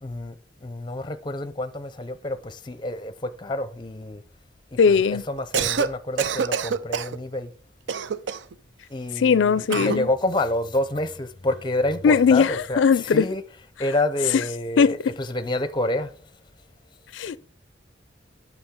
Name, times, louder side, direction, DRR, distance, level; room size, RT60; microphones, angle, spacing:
voice 1, 0.0-4.2 4.7-7.5 8.9-16.3, left 1 dB, 25° left, 0.6 m, -28 dB
voice 2, 4.8-5.2 9.2-10.1 12.0-13.2 14.8-14.9 17.1-17.4, left 6 dB, 85° left, 0.4 m, -19 dB
Cough, 5.4-5.9 6.2-7.2 7.9-8.5 9.7-10.0, right 6 dB, 80° right, 0.4 m, -26 dB
8.7 x 6.1 x 3.7 m
head